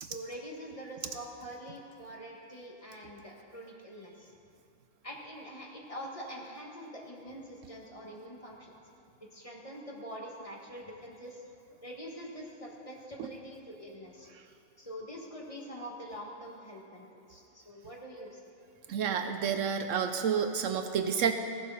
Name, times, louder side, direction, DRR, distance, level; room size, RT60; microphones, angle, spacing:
voice 1, 0.0-4.3 5.0-8.7 9.2-11.4 11.8-14.3 14.8-18.4, equal, 25° left, -2 dB, 1.4 m, -45 dB
voice 2, 18.9-21.3, right 7 dB, 70° right, 7 dB, 0.9 m, -29 dB
15.5 x 7.4 x 5.5 m, 2.8 s
omnidirectional pair, 1.4 m